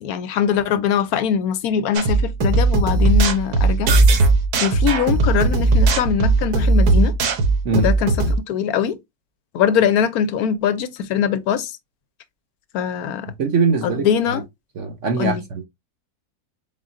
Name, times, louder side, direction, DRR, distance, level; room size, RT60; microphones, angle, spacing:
voice 1, 0.0-4.0 4.6-7.2 7.7-9.0 9.5-11.7 12.7-13.3 14.0-14.4 15.2-15.4, left 8 dB, 75° left, 1.0 m, -22 dB
sound 1, 1.9-8.3, right 3 dB, 75° right, 1.4 m, -17 dB
voice 2, 13.4-14.4 14.7-15.6, right 4 dB, 60° right, 0.9 m, -22 dB
4.2 x 3.7 x 2.5 m
omnidirectional pair, 1.7 m